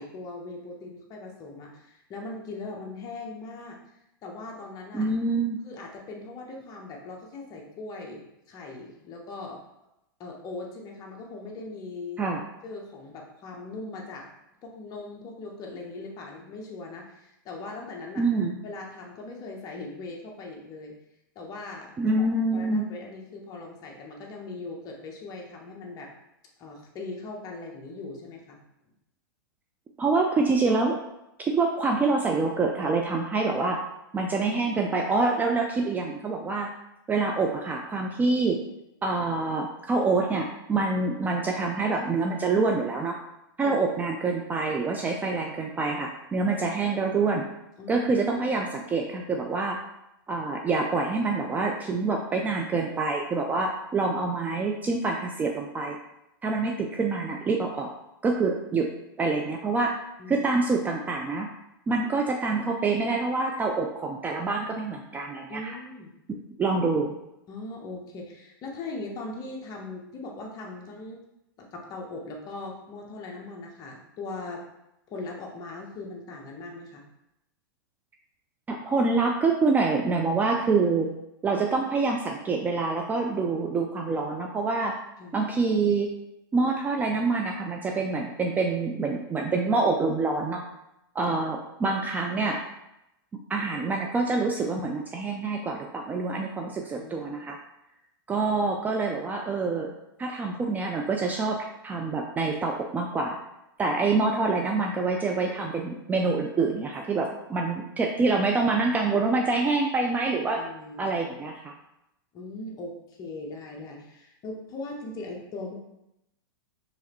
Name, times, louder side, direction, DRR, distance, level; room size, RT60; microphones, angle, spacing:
voice 1, 0.0-3.8 4.2-5.1 5.6-9.6 10.2-12.3 12.6-14.3 14.6-18.2 18.6-21.0 21.3-26.1 26.6-28.6 43.6-43.8 47.8-48.1 60.2-60.5 65.5-66.1 67.5-71.2 71.6-74.6 75.1-77.0 85.2-85.3 91.3-91.4 96.9-97.5 110.5-111.0 112.3-115.7, left 2 dB, 30° left, 0 dB, 1.0 m, -40 dB
voice 2, 4.9-5.6 12.2-12.4 18.2-18.6 22.0-22.9 30.0-31.0 31.4-33.8 34.1-36.7 37.1-38.6 39.0-43.2 43.6-47.4 47.9-49.8 50.3-56.0 56.4-57.9 58.2-58.9 59.2-59.9 60.3-61.5 61.9-65.8 66.6-67.2 78.7-81.1 81.4-85.0 85.3-86.1 86.5-90.6 91.2-92.6 93.5-97.6 98.3-99.9 100.2-101.6 101.8-103.4 103.8-110.6 111.0-111.7, right 3 dB, 15° right, 1 dB, 0.3 m, -26 dB
4.7 x 3.0 x 3.0 m, 0.87 s
hypercardioid pair, 125°, 12 cm